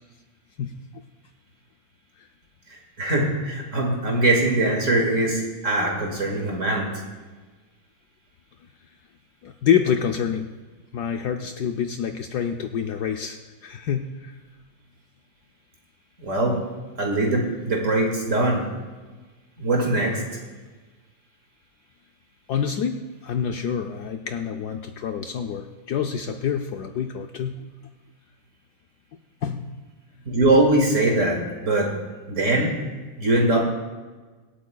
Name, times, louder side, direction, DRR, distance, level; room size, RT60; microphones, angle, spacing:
voice 1, 3.0-6.9 16.2-16.6 17.0-18.6 19.6-20.2 30.3-31.9 32.3-32.7 33.2-33.6, right 2 dB, 40° right, 0 dB, 2.2 m, -21 dB
voice 2, 9.4-10.5 10.9-14.4 22.5-27.7 29.4-29.7, left 8 dB, 70° left, 5 dB, 1.0 m, -27 dB
24.5 x 8.6 x 2.3 m, 1.3 s
omnidirectional pair, 2.1 m